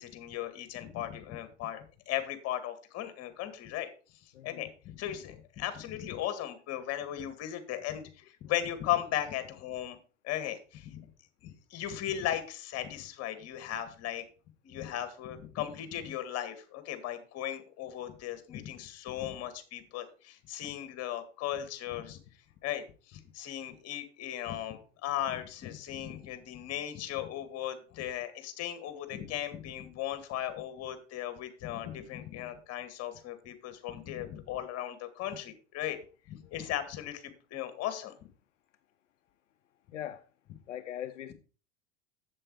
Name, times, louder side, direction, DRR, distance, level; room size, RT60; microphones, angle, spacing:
voice 1, 0.0-10.0 10.2-11.0 11.4-14.2 14.6-22.2 22.6-36.0 36.2-38.3, left 12 dB, 40° left, 2.0 m, -37 dB
voice 2, 4.3-4.7 36.4-36.5 39.9-40.2 40.7-41.3, left 11 dB, 85° left, 0.6 m, -40 dB
7.7 x 7.7 x 4.8 m
hypercardioid pair, 90°, 36 cm